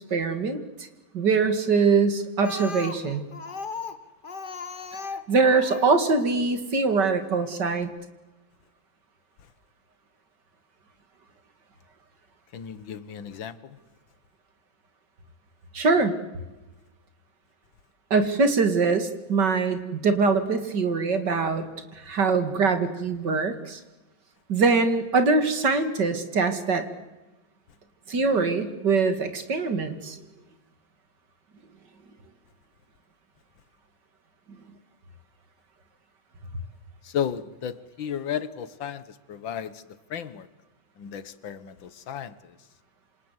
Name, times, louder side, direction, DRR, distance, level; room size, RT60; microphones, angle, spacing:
voice 1, 0.1-0.6 1.1-3.2 5.3-7.9 15.7-16.2 18.1-21.7 22.1-23.8 24.5-26.8 28.1-30.2, right 4 dB, 60° right, 2.7 m, -23 dB
Speech, 2.4-6.0 6.9-7.0 7.4-7.5 7.8-7.9, left 4 dB, 30° left, 1.2 m, -37 dB
voice 2, 12.5-13.8 37.0-39.8 40.1-40.5 41.0-42.6, left 8 dB, 75° left, 1.9 m, -34 dB
27.0 x 26.5 x 8.1 m
omnidirectional pair, 2.1 m